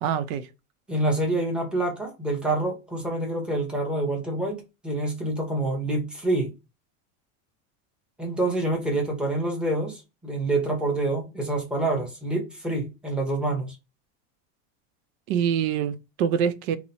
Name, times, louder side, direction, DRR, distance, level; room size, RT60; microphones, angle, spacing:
voice 1, 0.0-0.5 15.3-16.8, right 8 dB, 85° right, 0.6 m, -25 dB
voice 2, 0.9-4.6 4.8-6.5 8.2-13.8, right 2 dB, ahead, 0.7 m, -27 dB
2.8 x 2.0 x 4.0 m
supercardioid pair, 155°, 40 cm